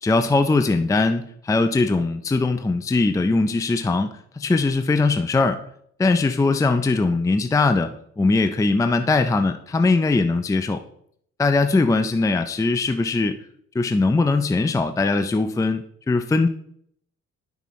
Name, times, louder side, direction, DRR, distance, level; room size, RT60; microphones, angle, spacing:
voice 1, 0.0-5.6 6.0-10.8 11.4-13.4 13.7-16.5, left 3 dB, 10° left, 8 dB, 0.4 m, -21 dB
11.0 x 5.7 x 3.1 m, 0.68 s
cardioid pair, 90°, 30 cm